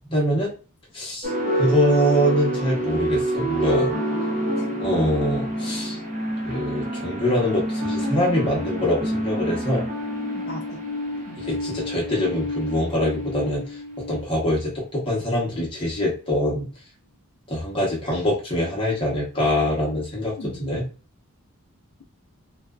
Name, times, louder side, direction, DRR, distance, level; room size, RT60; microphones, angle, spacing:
voice 1, 0.1-0.5 0.9-3.9 4.8-6.0 6.4-9.8 11.4-13.8 14.1-16.7 17.5-20.8, equal, 25° left, -5 dB, 0.9 m, -24 dB
sound 1, 1.2-14.6, right 1 dB, 35° right, 0.7 m, -27 dB
voice 2, 3.7-4.0 4.6-5.0 10.3-10.8 11.3-11.4 20.4-20.6, left 2 dB, 40° left, -1 dB, 0.3 m, -38 dB
2.5 x 2.2 x 2.3 m, 0.35 s
head